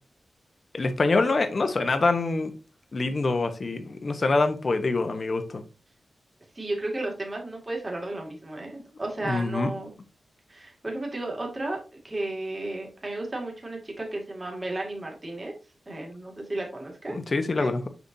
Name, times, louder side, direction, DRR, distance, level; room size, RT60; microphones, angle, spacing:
voice 1, 0.7-2.5 2.9-5.6 9.2-9.7 17.1-17.9, left 3 dB, 40° left, 8 dB, 1.0 m, -25 dB
voice 2, 6.5-9.9 10.5-15.5 15.9-17.2 17.6-17.7, right 2 dB, 25° right, 0 dB, 2.2 m, -33 dB
6.8 x 5.9 x 2.7 m, 0.30 s
wide cardioid pair, 125°, 0 cm